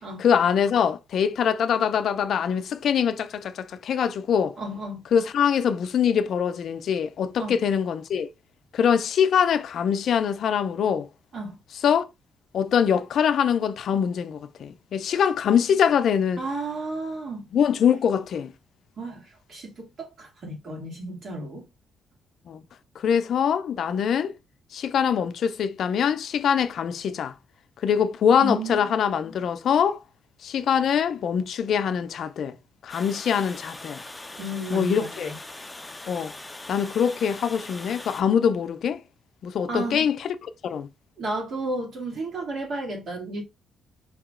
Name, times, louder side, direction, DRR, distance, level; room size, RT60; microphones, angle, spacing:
voice 1, 0.2-4.6 5.1-8.3 8.7-11.1 11.8-12.1 12.5-16.4 17.5-18.5 22.5-22.6 23.0-24.3 24.7-27.3 27.8-30.0 30.4-32.6 32.8-34.0 34.7-35.3 36.1-36.3 36.7-39.0 39.4-40.9, left 8 dB, 65° left, 0.5 m, -23 dB
voice 2, 4.6-5.0 7.4-7.5 11.3-11.5 16.4-17.5 19.0-21.7 28.4-28.9 34.4-35.4 39.7-40.1 41.2-43.4, right 2 dB, 55° right, 2.2 m, -33 dB
Water, 32.9-38.2, left 2 dB, 15° left, 0.6 m, -41 dB
4.8 x 2.9 x 3.7 m
cardioid pair, 90°, 0 cm